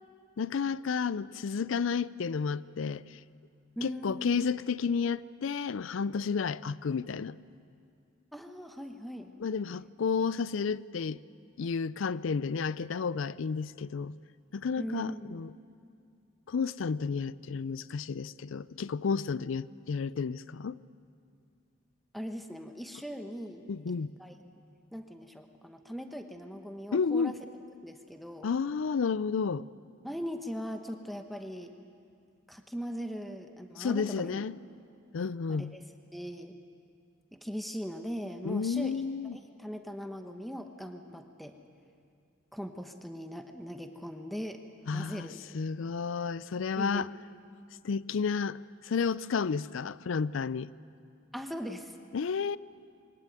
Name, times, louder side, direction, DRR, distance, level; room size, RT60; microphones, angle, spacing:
voice 1, 0.4-3.0 3.8-7.4 9.4-11.2 11.6-14.2 14.5-15.5 16.5-20.8 23.7-24.1 26.9-27.4 28.4-29.7 33.8-34.6 35.1-35.7 38.4-39.4 44.9-45.3 45.5-47.1 47.8-48.6 48.8-50.7 52.1-52.6, left 5 dB, 75° left, 0.4 m, -31 dB
voice 2, 3.8-4.4 8.3-9.4 14.8-15.4 22.1-23.9 24.2-24.3 24.9-27.4 27.8-28.5 30.0-31.7 32.5-34.4 35.5-35.8 36.1-36.5 37.3-39.0 39.3-41.6 42.5-44.6 44.9-45.4 46.8-47.0 51.3-51.9, equal, ahead, 1.0 m, -40 dB
22.0 x 17.5 x 9.1 m
head